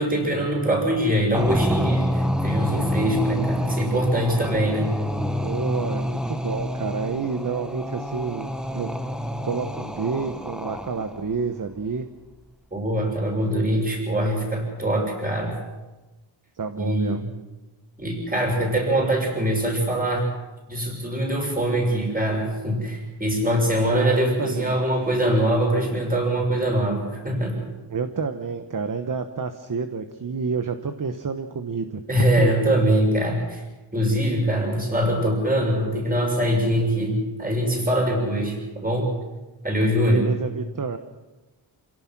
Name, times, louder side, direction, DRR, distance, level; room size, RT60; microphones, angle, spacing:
voice 1, 0.0-4.9 12.7-15.6 16.8-17.2 18.0-20.3 20.7-27.6 32.1-33.6 33.9-39.1 39.6-40.3, right 1 dB, 15° right, 0 dB, 6.5 m, -23 dB
sound 1, 1.3-11.2, equal, ahead, 1.3 m, -27 dB
voice 2, 5.4-8.9 9.4-12.1 16.5-17.2 23.8-24.8 27.9-32.4 40.1-41.0, right 5 dB, 40° right, 8 dB, 1.1 m, -29 dB
27.0 x 17.5 x 6.1 m, 1.1 s
wide cardioid pair, 105°, 49 cm